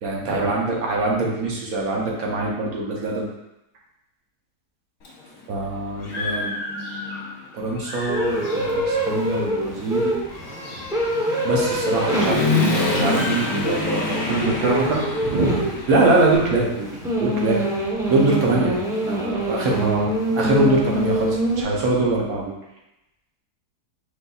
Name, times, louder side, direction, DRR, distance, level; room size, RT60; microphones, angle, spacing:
voice 1, 0.0-3.3 5.5-10.2 11.4-14.2 15.9-16.9 17.2-17.6 18.1-18.8 19.0-19.9 20.4-22.5, right 2 dB, 65° right, -2 dB, 1.2 m, -23 dB
Human voice / Motorcycle, 5.1-5.2 5.6-7.4 7.8-16.4, left 3 dB, 65° left, 1.4 m, -28 dB
sound 1, 8.1-21.6, right 1 dB, 5° right, 0.5 m, -25 dB
voice 2, 14.3-15.7 19.8-20.0, right 2 dB, 80° right, -3 dB, 1.5 m, -23 dB
5.4 x 3.9 x 2.3 m, 0.90 s
omnidirectional pair, 1.8 m